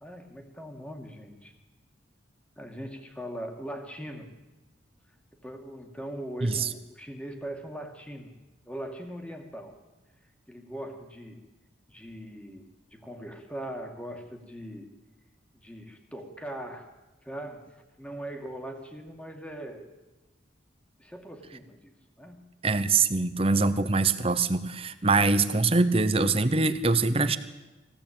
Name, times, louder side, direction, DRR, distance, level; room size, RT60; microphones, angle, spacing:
voice 1, 0.0-1.5 2.6-4.3 5.4-8.3 8.7-9.8 10.5-11.4 11.9-14.9 15.5-16.9 17.2-19.9 21.0-22.4, right 1 dB, 5° left, 4 dB, 2.2 m, -40 dB
voice 2, 22.6-27.4, right 3 dB, 30° right, 12 dB, 1.0 m, -24 dB
22.5 x 16.5 x 8.9 m, 1.1 s
head